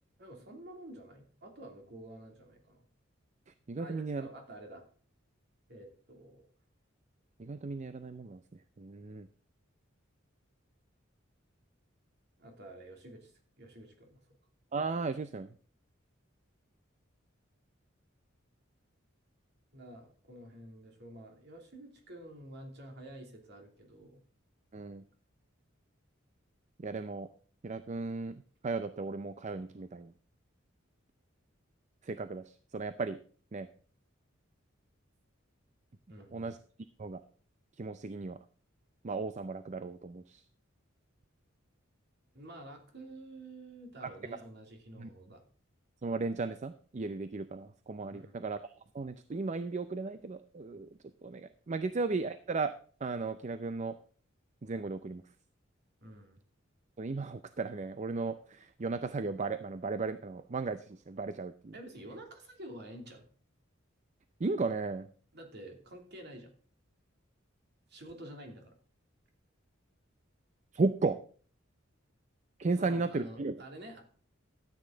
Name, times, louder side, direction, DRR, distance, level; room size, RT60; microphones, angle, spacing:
voice 1, 0.2-2.9 3.8-4.8 5.7-6.5 12.4-14.2 19.7-24.2 36.1-36.5 42.3-45.4 48.1-48.5 51.8-51.9 56.0-56.4 61.7-63.2 65.3-66.5 67.9-68.8 72.8-74.0, right 1 dB, 55° right, 3 dB, 2.9 m, -49 dB
voice 2, 3.5-4.3 7.4-9.3 14.7-15.5 24.7-25.0 26.8-27.3 27.6-30.1 32.0-33.2 33.5-33.7 36.3-36.6 37.0-37.2 37.8-38.4 39.0-40.4 44.0-44.4 45.0-45.1 46.0-50.9 51.2-52.7 53.0-54.0 54.6-55.2 57.0-61.7 64.4-65.1 70.7-71.2 72.6-73.6, right 3 dB, 35° right, 11 dB, 0.5 m, -35 dB
13.5 x 8.5 x 3.9 m, 0.44 s
head